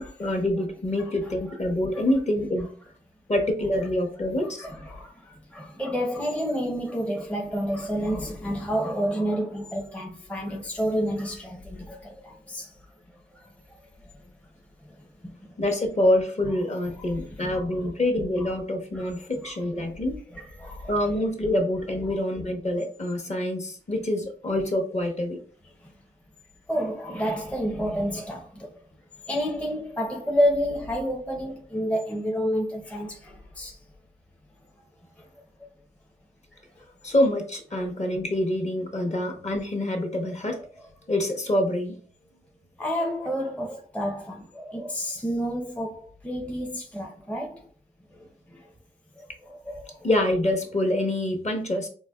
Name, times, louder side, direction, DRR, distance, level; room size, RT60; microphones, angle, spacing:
voice 1, 0.0-2.7 3.3-4.7 15.6-20.2 20.9-25.4 37.0-40.6 41.1-42.0 50.0-51.9, left 1 dB, 35° left, 0.9 m, -26 dB
voice 2, 4.6-12.7 13.3-13.5 15.0-15.5 17.0-17.1 17.4-17.9 18.9-19.1 19.4-19.5 19.8-19.9 20.3-20.9 25.8-25.9 26.7-28.7 29.3-33.8 35.2-35.3 36.8-36.9 37.7-37.9 42.8-47.7 48.5-48.7 49.2-50.1, equal, 5° left, 0.6 m, -30 dB
4.0 x 2.1 x 2.3 m
cardioid pair, 65°, 19 cm